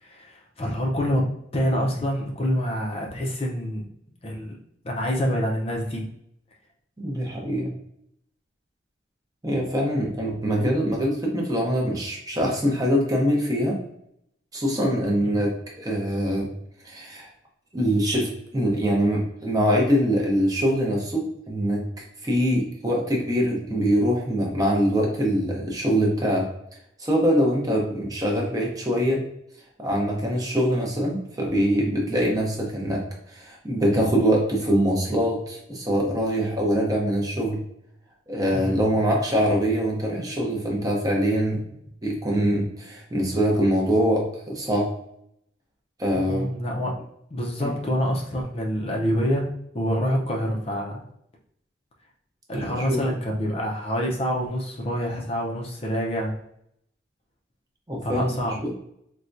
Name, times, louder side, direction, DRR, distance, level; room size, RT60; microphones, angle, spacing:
voice 1, 0.0-1.2 1.5-3.9 4.2-4.5 4.8-6.1 15.3-15.4 38.5-38.9 46.1-47.0 47.3-49.5 49.7-51.0 52.5-56.4 58.0-58.6, equal, 30° left, -1 dB, 0.5 m, -26 dB
voice 2, 7.0-7.7 9.4-13.8 14.5-16.5 16.8-17.3 17.7-21.8 22.2-26.5 27.0-29.3 29.8-37.6 38.3-41.6 42.0-44.9 46.0-46.5 47.6-47.7 52.5-53.1 57.9-58.3 58.6-58.7, equal, 20° right, -1 dB, 0.7 m, -23 dB
4.2 x 2.2 x 2.5 m, 0.74 s
head